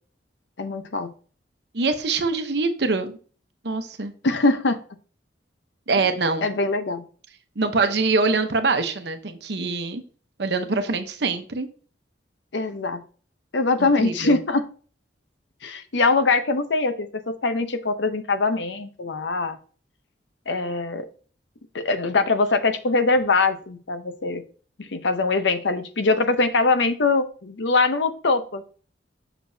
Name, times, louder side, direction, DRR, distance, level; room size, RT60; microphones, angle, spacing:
voice 1, 0.6-1.1 4.2-4.8 6.4-7.0 12.5-13.0 13.5-14.7 15.6-19.6 20.5-21.1 21.7-24.4 24.8-28.7, left 3 dB, 75° left, 10 dB, 0.7 m, -22 dB
voice 2, 1.7-3.2 3.6-4.1 5.9-6.4 7.6-10.0 10.4-11.7 13.8-14.4, right 3 dB, 65° right, 8 dB, 0.8 m, -24 dB
6.7 x 6.1 x 2.7 m, 0.40 s
head